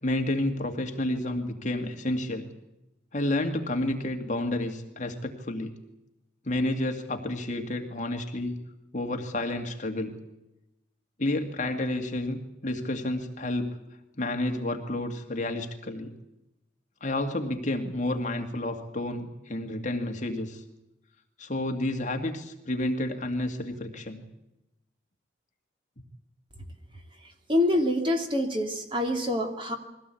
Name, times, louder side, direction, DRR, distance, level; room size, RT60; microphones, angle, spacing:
voice 1, 0.0-2.5 3.1-5.7 6.4-8.6 8.9-10.2 11.2-13.8 14.2-16.1 17.0-20.6 21.4-24.2, left 1 dB, 40° left, 4 dB, 2.3 m, -30 dB
voice 2, 27.5-29.8, left 1 dB, 25° right, 4 dB, 2.7 m, -26 dB
22.5 x 16.5 x 8.5 m, 0.93 s
head